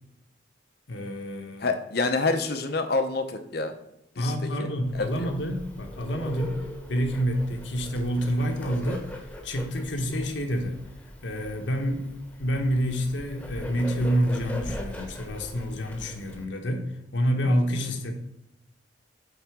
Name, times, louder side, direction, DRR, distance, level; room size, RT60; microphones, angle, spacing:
voice 1, 0.9-1.7 4.2-6.6 6.9-9.1 9.4-10.8 11.2-12.1 12.4-16.9 17.1-18.1, equal, 70° left, 4 dB, 1.2 m, -28 dB
voice 2, 1.6-3.7 4.2-4.7 4.9-5.3 17.8-18.0, left 3 dB, 50° left, 8 dB, 0.8 m, -28 dB
Bird, 4.8-16.4, left 1 dB, 5° left, 1.0 m, -41 dB
8.2 x 4.0 x 6.0 m, 0.87 s
head